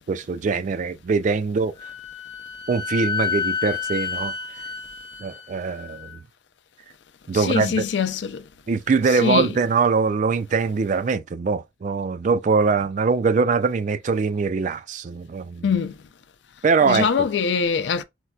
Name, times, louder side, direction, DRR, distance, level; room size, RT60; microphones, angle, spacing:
voice 1, 0.1-1.7 2.7-4.3 5.2-6.2 7.3-7.8 8.7-15.7 16.6-17.3, right 4 dB, 45° right, 0.3 m, -22 dB
Wind instrument woodwind instrument, 1.8-6.2, left 6 dB, 60° right, 1.3 m, -30 dB
voice 2, 7.3-8.4 9.2-9.5 15.6-16.0 16.9-18.0, left 6 dB, 80° left, 0.4 m, -23 dB
4.4 x 2.2 x 2.3 m
head